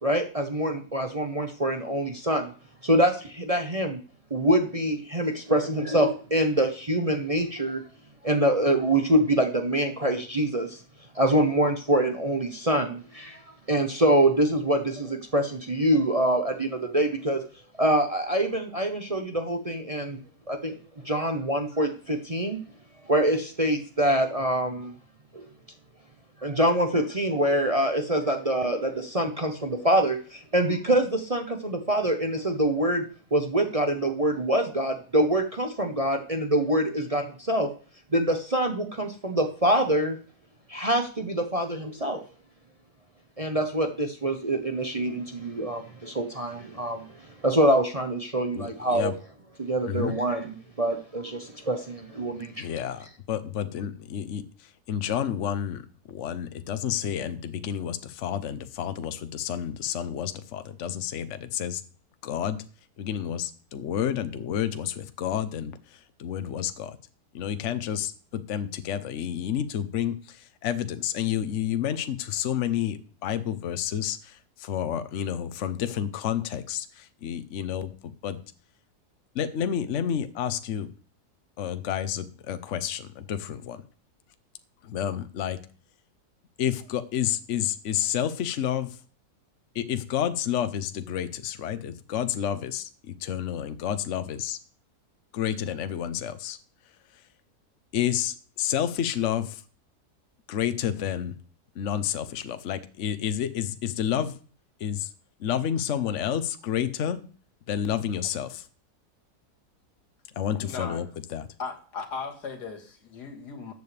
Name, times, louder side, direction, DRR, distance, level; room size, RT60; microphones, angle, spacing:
voice 1, 0.0-2.5 2.8-4.0 4.3-7.8 8.2-10.8 11.1-13.4 13.7-17.4 17.8-20.2 20.5-20.7 21.0-22.6 23.1-24.9 25.3-25.5 26.4-33.0 33.3-37.7 38.1-40.2 40.7-42.2 43.4-49.1 49.6-52.7, right 1 dB, 25° right, 4 dB, 0.9 m, -25 dB
voice 2, 48.5-49.1 49.8-50.2 52.5-61.8 62.2-62.6 63.0-67.0 67.3-78.4 79.3-80.9 81.6-83.8 84.8-85.6 86.6-89.0 89.7-94.6 95.3-96.6 97.9-99.6 100.5-101.3 101.8-104.4 104.8-105.1 105.4-107.2 107.7-108.6 110.4-111.5, left 9 dB, 55° left, 11 dB, 1.1 m, -30 dB
voice 3, 110.6-111.0 111.6-113.7, left 5 dB, 85° left, 6 dB, 2.3 m, -37 dB
14.0 x 8.3 x 3.4 m, 0.42 s
omnidirectional pair, 1.7 m